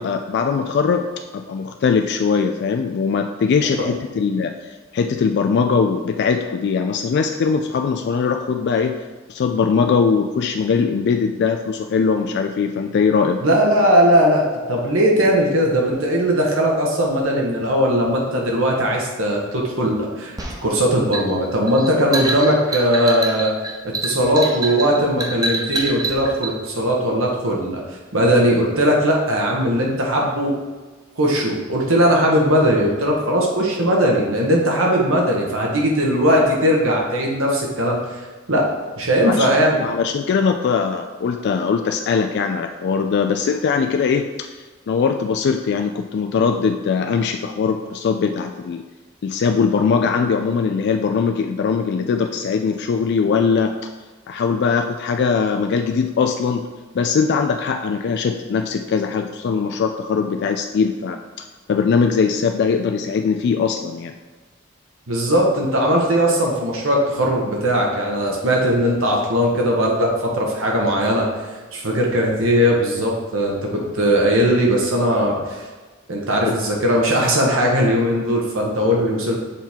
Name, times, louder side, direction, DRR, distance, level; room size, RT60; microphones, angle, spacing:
voice 1, 0.0-9.0 9.3-13.4 39.3-39.5 39.8-48.8 49.2-53.9 54.3-56.7 56.9-61.2 61.7-64.1, left 5 dB, 55° left, 5 dB, 0.3 m, -21 dB
voice 2, 13.4-20.3 20.6-23.5 23.8-27.8 28.1-30.5 31.2-38.0 38.5-38.7 39.0-39.8 65.1-71.3 71.7-75.6 76.1-79.4, equal, 80° right, -1 dB, 1.4 m, -19 dB
sound 1, 20.4-26.5, right 2 dB, 20° right, 0.8 m, -26 dB
7.3 x 3.6 x 4.5 m, 1.3 s
head